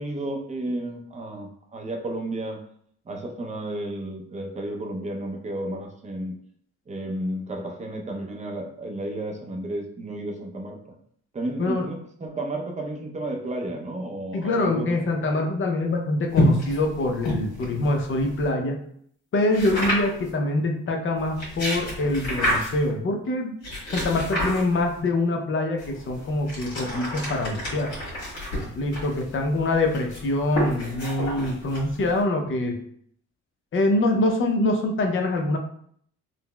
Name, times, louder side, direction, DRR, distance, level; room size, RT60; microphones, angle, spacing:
voice 1, 0.0-2.6 3.1-6.4 6.9-10.9 11.3-15.0, right 1 dB, 25° right, 1 dB, 0.6 m, -32 dB
voice 2, 11.6-11.9 14.3-18.8 19.3-23.5 23.9-27.9 28.8-32.8 33.7-35.6, left 2 dB, 40° left, 3 dB, 0.6 m, -24 dB
sound 1, 16.3-18.5 19.5-20.3 21.2-22.9 23.6-25.0 25.8-32.2, left 1 dB, 70° left, 1.4 m, -29 dB
3.8 x 2.0 x 2.2 m, 0.64 s
cardioid pair, 90°, 30 cm